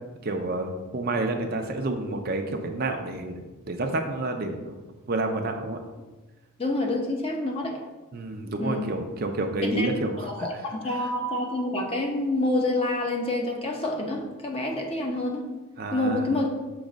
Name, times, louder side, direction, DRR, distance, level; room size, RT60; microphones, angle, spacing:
voice 1, 0.2-4.8 5.1-5.8 8.1-10.5 10.9-11.1 15.8-16.4, right 2 dB, 40° right, 5 dB, 0.5 m, -29 dB
voice 2, 6.6-7.8 8.6-8.8 9.6-9.9 10.2-15.5 15.9-16.5, left 2 dB, 25° left, 1 dB, 0.7 m, -27 dB
6.2 x 3.1 x 5.0 m, 1.2 s
head